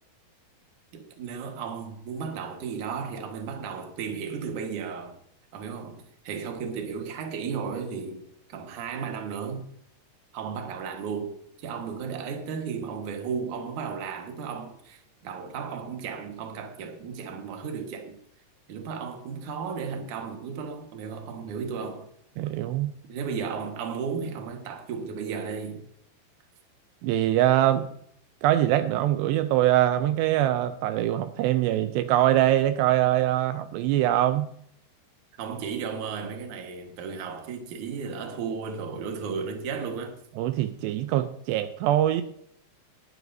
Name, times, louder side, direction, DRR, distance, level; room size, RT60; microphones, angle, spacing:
voice 1, 0.9-5.2 5.5-9.7 10.3-18.2 18.7-22.1 23.1-25.8 35.4-40.2, right 6 dB, 55° right, 2.6 m, -34 dB
voice 2, 22.4-22.9 27.0-27.9 28.4-34.5 40.4-42.2, right 13 dB, 85° right, 2.7 m, -23 dB
19.5 x 9.5 x 2.7 m
omnidirectional pair, 4.9 m